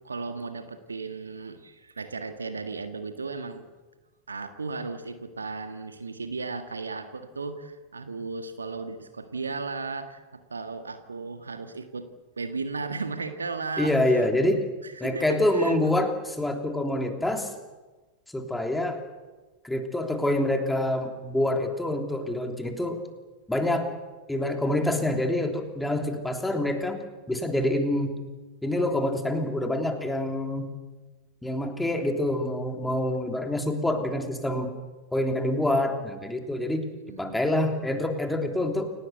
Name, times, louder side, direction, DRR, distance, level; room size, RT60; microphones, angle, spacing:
voice 1, 0.0-3.7 4.3-12.1 12.4-14.5 14.8-15.8 37.1-37.7, right 4 dB, 75° right, 8 dB, 1.7 m, -35 dB
voice 2, 13.8-14.6 15.0-17.5 18.3-19.1 19.6-23.0 23.5-23.9 24.3-28.2 28.6-30.7 31.4-34.8 35.1-38.9, left 1 dB, 5° left, 4 dB, 3.2 m, -26 dB
29.0 x 18.0 x 8.1 m, 1.2 s
figure-of-eight pair, 90°, 0 cm